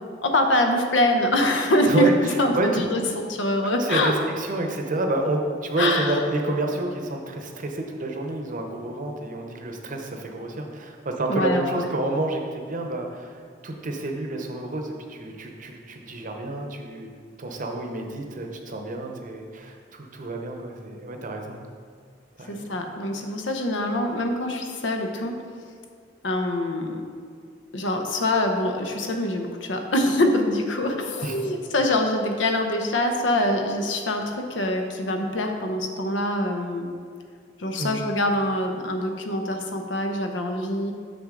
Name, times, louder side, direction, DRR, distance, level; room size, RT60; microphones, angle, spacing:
voice 1, 0.2-2.1 2.4-4.1 5.8-6.2 11.3-11.9 22.5-25.3 26.2-27.0 27.7-36.9 37.6-40.9, left 1 dB, 80° left, 4 dB, 0.8 m, -24 dB
voice 2, 1.9-2.8 3.6-17.1 17.4-21.6 22.4-22.7 31.2-31.5 37.8-38.0, right 2 dB, 45° right, 3 dB, 0.8 m, -29 dB
7.0 x 6.0 x 3.8 m, 2.1 s
head